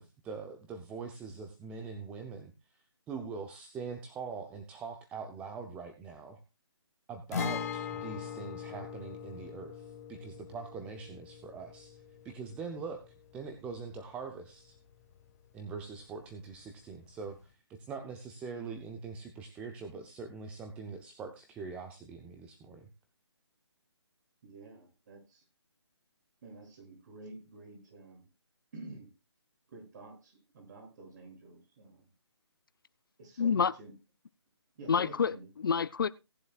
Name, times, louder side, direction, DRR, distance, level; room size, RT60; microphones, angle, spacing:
voice 1, 0.0-6.4 7.1-13.0 13.3-14.8 15.5-22.9, right 5 dB, 10° right, 0.8 m, -43 dB
Guitar, 7.3-14.9 15.2-15.3 17.3-17.4, left 7 dB, 35° left, 1.7 m, -41 dB
voice 2, 24.4-25.4 26.4-28.3 28.7-29.1 29.7-32.0 33.2-33.9 34.8-35.5, right 2 dB, 40° right, 7.2 m, -49 dB
voice 3, 33.4-33.7 34.9-36.1, left 6 dB, 50° left, 0.6 m, -28 dB
18.0 x 11.0 x 2.4 m
figure-of-eight pair, 155°, 15 cm